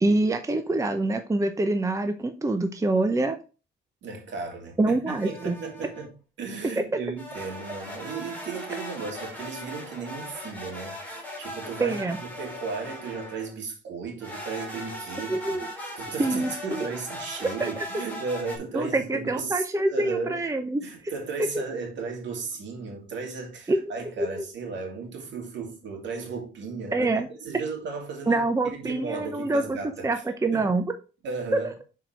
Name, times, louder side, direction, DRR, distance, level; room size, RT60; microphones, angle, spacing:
voice 1, 0.0-3.4 4.8-5.6 6.8-6.9 11.8-12.2 15.3-15.7 16.2-16.8 17.4-17.8 18.7-20.8 23.7-23.8 24.2-24.4 26.9-27.3 28.3-29.8 30.0-30.8 31.5-31.7, right 2 dB, 15° right, 0.7 m, -25 dB
voice 2, 4.0-6.1 6.4-15.6 16.0-20.4 20.8-30.2 30.5-30.7 31.2-31.7, right 4 dB, 65° right, 2.5 m, -35 dB
sound 1, 5.1-6.1 7.2-13.6 14.2-18.6, left 1 dB, 10° left, 3.3 m, -39 dB
5.8 x 4.7 x 5.0 m
cardioid pair, 90°, 20 cm